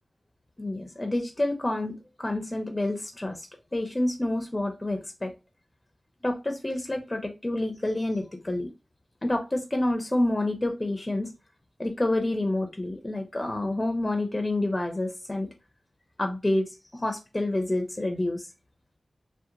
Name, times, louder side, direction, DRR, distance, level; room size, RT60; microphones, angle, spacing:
voice 1, 0.6-5.3 6.2-8.7 9.2-11.3 11.8-15.5 16.2-18.5, left 1 dB, 25° left, 0.5 m, -28 dB
2.8 x 2.1 x 2.4 m
cardioid pair, 50°, 0 cm